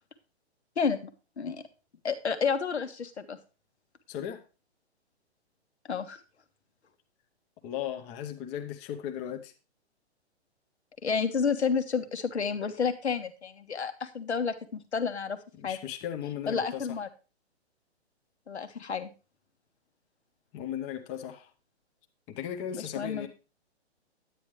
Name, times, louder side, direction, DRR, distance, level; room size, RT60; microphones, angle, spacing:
voice 1, 0.8-1.1 1.4-1.6 2.0-3.4 5.9-6.2 11.0-15.4 15.6-15.8 16.5-17.1 18.5-19.1 22.7-23.3, left 6 dB, 75° left, 1.3 m, -30 dB
voice 2, 4.1-4.4 7.6-9.5 15.5-17.0 20.5-21.5 22.3-23.3, left 10 dB, 20° left, 0.7 m, -36 dB
9.3 x 9.2 x 3.1 m
figure-of-eight pair, 125°, 33 cm